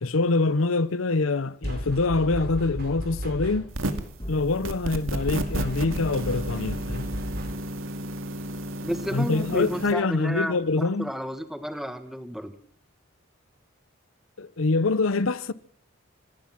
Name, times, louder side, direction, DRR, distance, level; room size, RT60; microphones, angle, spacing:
voice 1, 0.0-3.7 4.3-7.1 9.1-11.1 14.4-15.5, left 3 dB, 85° left, 0.8 m, -25 dB
sound 1, 1.6-3.9 5.1-7.8, equal, 50° right, 4.8 m, -34 dB
sound 2, 3.7-4.2 4.6-9.9, right 1 dB, 85° right, 2.4 m, -32 dB
sound 3, 4.2-8.0, equal, 25° left, 2.1 m, -44 dB
voice 2, 8.8-12.5, equal, ahead, 1.6 m, -32 dB
25.5 x 19.0 x 6.0 m
head